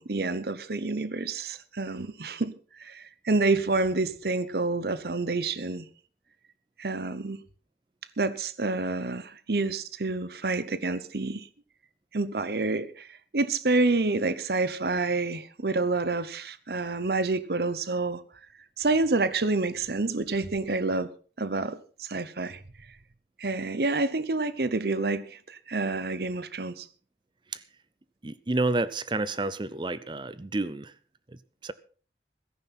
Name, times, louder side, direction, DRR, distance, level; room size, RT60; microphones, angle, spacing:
voice 1, 0.0-5.9 6.8-7.4 8.2-11.5 12.1-13.1 13.3-18.2 18.8-21.1 21.4-22.6 23.4-26.9, right 3 dB, 60° right, 0.9 m, -28 dB
voice 2, 28.2-30.9 31.3-31.7, right 2 dB, 25° right, 0.6 m, -30 dB
16.0 x 14.0 x 4.2 m
head